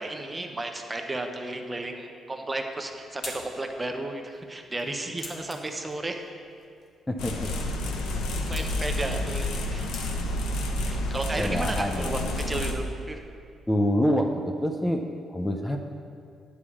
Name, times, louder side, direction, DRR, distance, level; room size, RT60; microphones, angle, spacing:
voice 1, 0.0-6.3 8.4-10.0 10.9-12.2 12.5-13.2, right 2 dB, 20° right, 4 dB, 0.9 m, -33 dB
sound 1, 2.5-10.5, left 2 dB, 45° left, 1.8 m, -47 dB
voice 2, 7.1-7.5 11.4-12.3 13.7-15.8, equal, 10° left, 3 dB, 0.6 m, -26 dB
sound 2, 7.2-12.7, left 1 dB, 85° left, 0.9 m, -29 dB
9.4 x 4.9 x 7.3 m, 2.3 s
cardioid pair, 90°, 0 cm